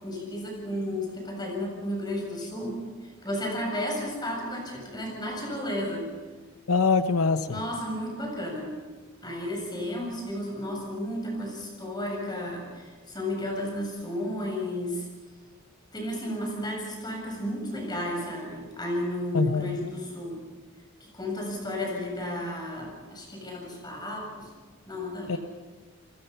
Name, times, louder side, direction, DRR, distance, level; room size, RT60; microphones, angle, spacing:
voice 1, 0.0-2.8 3.2-6.1 7.5-8.7 9.2-15.0 15.9-20.4 21.0-24.5 24.9-25.4, left 1 dB, 20° left, 0 dB, 7.5 m, -33 dB
voice 2, 6.7-7.5 19.3-19.9 25.3-25.4, left 4 dB, 85° left, 10 dB, 0.8 m, -23 dB
29.0 x 20.5 x 5.7 m, 1.4 s
head